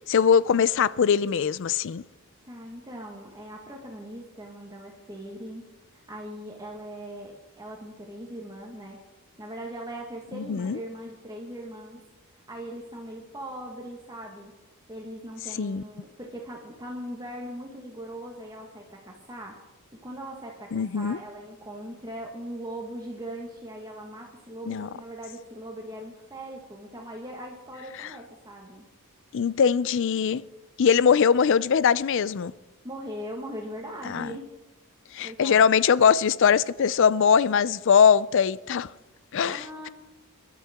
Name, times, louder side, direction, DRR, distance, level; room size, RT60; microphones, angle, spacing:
voice 1, 0.1-2.0 10.3-10.8 15.6-15.8 20.7-21.2 24.7-24.9 29.3-30.4 30.8-32.5 34.1-34.3 35.1-38.9 39.3-39.6, left 7 dB, 60° left, 0.4 m, -21 dB
voice 2, 2.4-5.6 5.9-9.0 9.4-12.0 12.5-14.5 14.9-19.6 20.0-28.8 32.8-34.5 35.2-35.7 39.3-39.9, right 1 dB, 20° right, 1.4 m, -40 dB
25.0 x 11.5 x 3.6 m
head